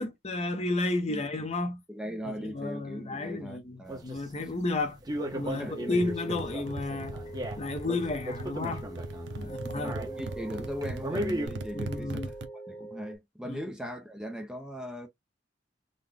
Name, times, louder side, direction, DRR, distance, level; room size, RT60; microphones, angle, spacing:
voice 1, 0.0-1.8 2.2-5.0 5.3-7.2 7.6-8.9 9.4-9.9 11.7-12.3 13.5-13.6, left 2 dB, 35° left, 0.7 m, -32 dB
voice 2, 1.9-4.0 5.6-5.8 9.4-12.4 12.7-15.1, equal, 5° right, 0.5 m, -39 dB
sound 1, 3.9-11.5, right 1 dB, 20° right, 0.9 m, -36 dB
sound 2, 5.2-13.2, right 1 dB, 80° left, 1.6 m, -43 dB
sound 3, 5.9-12.5, right 2 dB, 75° right, 0.6 m, -40 dB
3.9 x 2.2 x 3.3 m
head